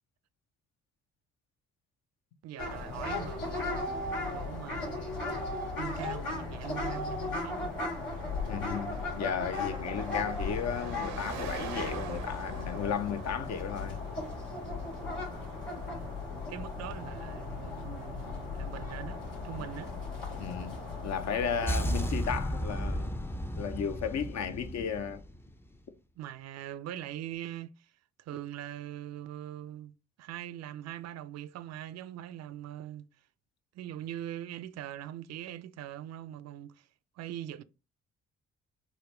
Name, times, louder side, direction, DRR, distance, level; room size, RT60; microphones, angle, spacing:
voice 1, 2.4-3.9 4.3-7.8 16.5-19.9 26.2-27.9 28.2-33.1 33.7-36.9 37.2-37.6, right 12 dB, 55° right, 0.4 m, -42 dB
sound 1, 2.6-22.1, left 3 dB, 85° left, 1.6 m, -37 dB
Car passing by, 2.9-16.1, right 6 dB, 85° right, 0.7 m, -47 dB
voice 2, 8.4-14.0 20.4-20.8 21.0-23.1 23.6-25.2, left 7 dB, 60° left, 0.6 m, -34 dB
sound 2, 21.7-25.7, equal, 10° left, 0.4 m, -34 dB
3.7 x 2.1 x 3.1 m
hypercardioid pair, 55°, 32 cm